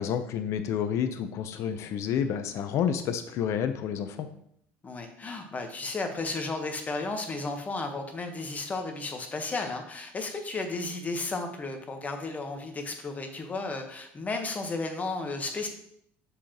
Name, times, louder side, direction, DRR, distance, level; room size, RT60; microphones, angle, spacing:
voice 1, 0.0-4.3, left 8 dB, 60° left, 9 dB, 0.7 m, -29 dB
voice 2, 4.8-15.7, left 3 dB, 25° left, 5 dB, 1.1 m, -33 dB
6.9 x 4.8 x 3.0 m, 0.69 s
supercardioid pair, 85°, 6 cm